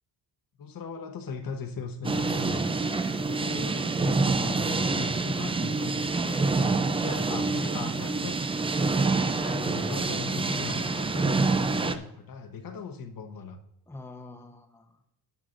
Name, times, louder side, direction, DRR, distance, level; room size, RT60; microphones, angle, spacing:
voice 1, 0.6-2.6 3.2-6.1 6.5-8.4 8.8-13.6, left 5 dB, 60° left, 6 dB, 1.0 m, -39 dB
sound 1, 2.0-12.0, right 3 dB, 15° right, 0.3 m, -27 dB
voice 2, 6.2-7.5 13.9-15.0, left 2 dB, 5° left, 4 dB, 0.8 m, -45 dB
12.5 x 9.2 x 2.5 m, 0.80 s
wide cardioid pair, 150°, 39 cm